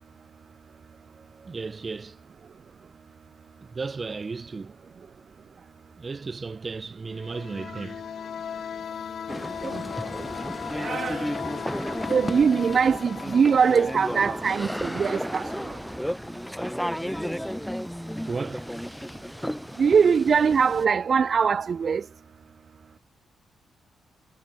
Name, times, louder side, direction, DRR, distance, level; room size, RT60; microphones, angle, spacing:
voice 1, 1.1-2.2 3.6-4.7 5.1-5.2 6.0-8.0 18.3-18.7, right 4 dB, 35° right, 5.6 m, -35 dB
sound 1, 7.1-15.7, left 7 dB, 60° left, 2.2 m, -38 dB
sound 2, 9.3-20.8, equal, ahead, 3.8 m, -33 dB
voice 2, 10.7-11.3 12.1-15.8 19.8-22.0, right 6 dB, 50° right, 0.6 m, -22 dB
cardioid pair, 90°, 0 cm